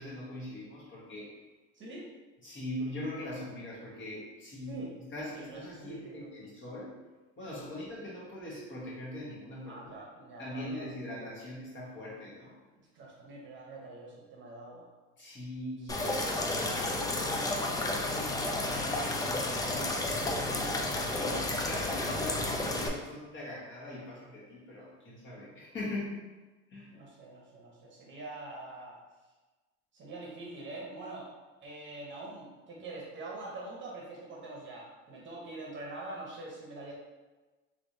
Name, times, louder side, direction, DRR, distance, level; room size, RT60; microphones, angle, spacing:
voice 1, 0.0-1.3 2.4-4.8 5.1-6.9 7.4-10.0 10.4-12.5 15.2-16.1 16.4-16.8 18.1-20.1 21.2-26.2 26.7-27.0, left 1 dB, 35° left, -6 dB, 1.4 m, -41 dB
voice 2, 1.7-2.1 4.7-6.3 7.5-7.8 9.6-10.9 12.9-14.9 15.9-18.0 20.0-21.4 26.9-29.0 29.9-31.3 31.6-36.9, right 2 dB, 35° right, -3 dB, 0.9 m, -45 dB
sound 1, 15.9-22.9, left 2 dB, 10° left, 0.3 m, -32 dB
3.2 x 3.0 x 2.7 m, 1.2 s
supercardioid pair, 110°, 32 cm